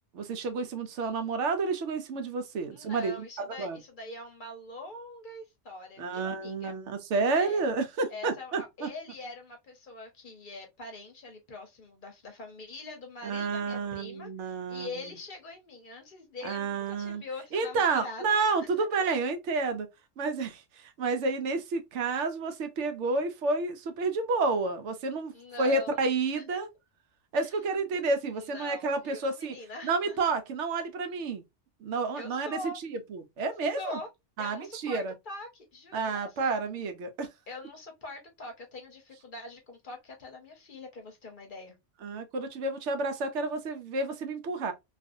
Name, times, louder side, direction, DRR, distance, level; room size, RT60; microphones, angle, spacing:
voice 1, 0.1-3.8 6.0-8.9 13.2-15.1 16.4-17.2 17.5-19.9 20.2-25.3 25.6-26.7 27.3-29.6 29.8-31.4 31.8-34.0 34.4-35.1 35.9-37.3 42.0-44.7, right 3 dB, 80° right, 0.9 m, -30 dB
voice 2, 2.7-6.7 7.3-7.6 8.1-18.4 25.3-26.1 26.3-26.6 27.4-27.5 28.3-30.2 32.1-32.8 33.8-34.1 34.4-36.5 37.5-41.8, left 2 dB, 50° left, 0.8 m, -43 dB
2.5 x 2.4 x 2.5 m
omnidirectional pair, 1.2 m